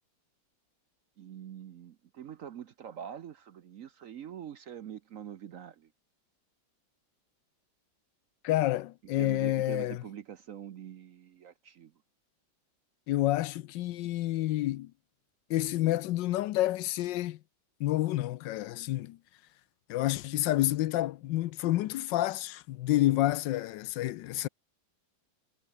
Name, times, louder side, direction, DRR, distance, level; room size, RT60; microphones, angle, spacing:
voice 1, 1.2-5.9 9.2-11.9, right 9 dB, 60° right, 0.9 m, -44 dB
voice 2, 8.4-10.0 13.1-14.9 15.5-17.4 17.8-19.2 19.9-24.5, left 15 dB, 80° left, 1.3 m, -29 dB
omnidirectional pair, 2.0 m